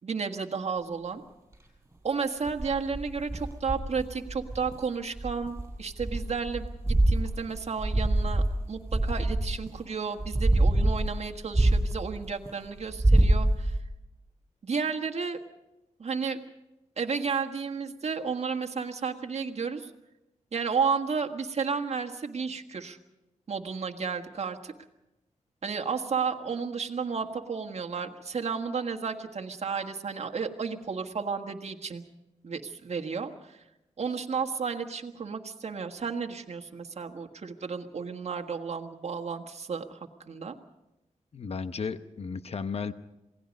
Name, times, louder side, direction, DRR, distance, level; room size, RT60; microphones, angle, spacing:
voice 1, 0.0-1.2 2.0-8.4 8.7-13.8 14.6-15.4 16.0-16.4 17.0-19.9 20.5-23.0 23.5-24.7 25.6-32.0 32.4-33.6 34.0-40.5, right 5 dB, 55° right, 5 dB, 1.6 m, -32 dB
sound 1, 2.5-4.7 5.2-9.8 10.2-12.5 12.8-13.8, right 1 dB, 20° right, 5.2 m, -25 dB
voice 2, 41.3-42.9, left 5 dB, 50° left, 11 dB, 0.9 m, -34 dB
27.5 x 18.0 x 5.3 m, 0.94 s
wide cardioid pair, 105°, 13 cm